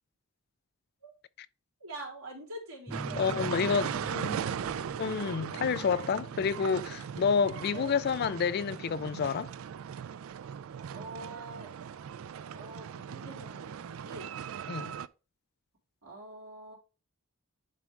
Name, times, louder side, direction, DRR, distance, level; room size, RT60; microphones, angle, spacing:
voice 1, 1.8-3.2 3.8-4.8 5.3-5.7 7.7-8.0 10.9-11.7 12.5-14.3 16.0-16.8, right 2 dB, 85° right, 3.6 m, -45 dB
sound 1, 2.9-12.3, equal, 5° right, 0.5 m, -46 dB
sound 2, 2.9-15.1, right 8 dB, 70° right, 0.3 m, -39 dB
voice 2, 3.2-4.4 5.0-9.5 14.7-14.9, left 6 dB, 45° left, 0.3 m, -29 dB
10.5 x 3.6 x 3.3 m
head